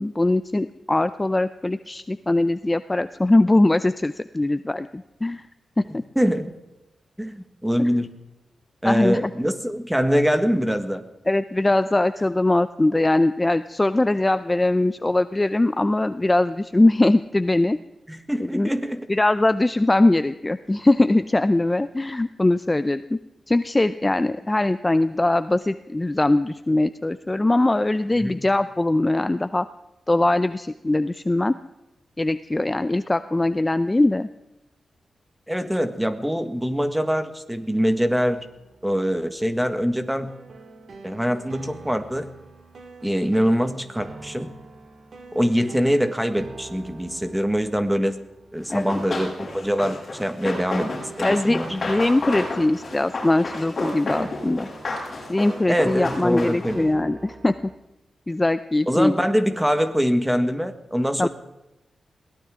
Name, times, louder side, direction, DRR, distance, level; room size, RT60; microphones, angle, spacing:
voice 1, 0.0-5.4 5.9-6.0 7.8-7.9 8.8-9.3 11.3-17.8 18.4-18.7 19.1-23.2 23.5-29.7 30.1-31.6 32.2-34.3 48.7-49.0 51.2-54.7 55.3-57.5 58.3-59.2 61.2-61.3, left 2 dB, 20° left, 12 dB, 0.5 m, -21 dB
voice 2, 6.1-6.5 7.2-8.1 8.8-11.0 18.1-19.1 28.2-28.4 35.5-38.5 38.8-40.3 41.0-42.3 43.0-44.5 45.3-48.2 48.5-50.9 51.2-51.7 55.7-56.9 58.9-61.3, equal, 5° right, 8 dB, 1.6 m, -23 dB
sound 1, 37.9-57.8, right 3 dB, 60° right, 2.3 m, -45 dB
Run, 48.7-56.9, left 2 dB, 40° left, 7.7 m, -31 dB
22.0 x 18.0 x 3.7 m, 0.98 s
wide cardioid pair, 110°, 0 cm